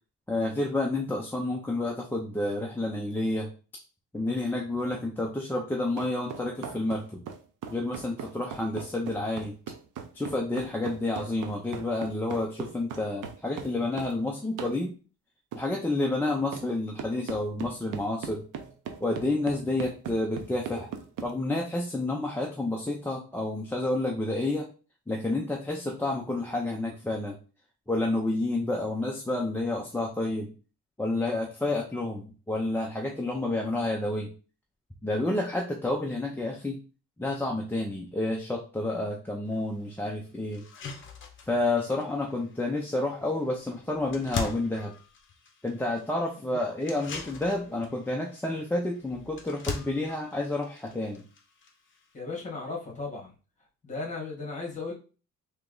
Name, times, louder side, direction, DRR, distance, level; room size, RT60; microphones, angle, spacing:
voice 1, 0.3-3.5 4.1-7.2 7.7-9.5 10.1-14.9 15.5-18.4 19.0-20.9 21.2-24.7 25.1-27.3 27.9-30.5 31.0-34.3 35.0-36.8 37.2-40.6 41.5-44.9 45.6-51.2, left 2 dB, 5° left, -2 dB, 0.4 m, -30 dB
sound 1, 6.0-14.2 14.6-14.8 15.5-15.7 16.5-16.7 17.0-21.3, right 7 dB, 75° right, 0.7 m, -39 dB
sound 2, 39.5-39.6 40.1-40.2 40.5-52.2, left 5 dB, 40° left, 0.7 m, -42 dB
voice 2, 52.1-53.3 53.8-54.9, left 3 dB, 25° left, -2 dB, 1.5 m, -36 dB
3.3 x 3.0 x 3.8 m, 0.35 s
cardioid pair, 165°, 31 cm